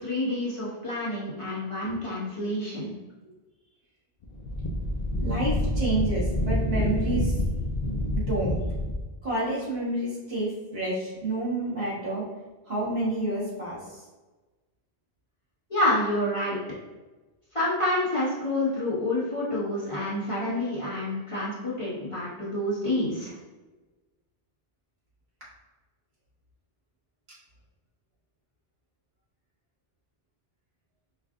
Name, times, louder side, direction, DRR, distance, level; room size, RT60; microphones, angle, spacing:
voice 1, 0.0-2.9 15.7-16.6 17.5-23.3, left 1 dB, 30° left, -9 dB, 1.2 m, -28 dB
Wind, 4.2-9.1, left 1 dB, 55° left, 0.5 m, -27 dB
voice 2, 5.2-7.3 8.1-8.6 9.2-12.2 12.7-14.0, right 2 dB, 70° right, -8 dB, 1.7 m, -29 dB
5.4 x 2.4 x 2.4 m, 1.2 s
omnidirectional pair, 1.1 m